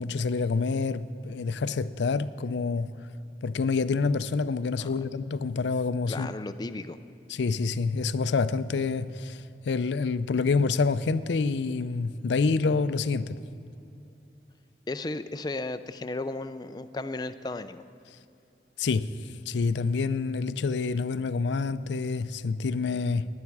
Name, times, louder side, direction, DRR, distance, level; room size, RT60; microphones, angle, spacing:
voice 1, 0.0-2.9 3.4-6.3 7.3-13.4 18.8-19.1 19.5-23.3, left 4 dB, 80° left, 0.4 m, -27 dB
voice 2, 6.1-7.0 14.9-17.8, left 2 dB, 25° left, 0.4 m, -34 dB
17.5 x 10.0 x 4.8 m
head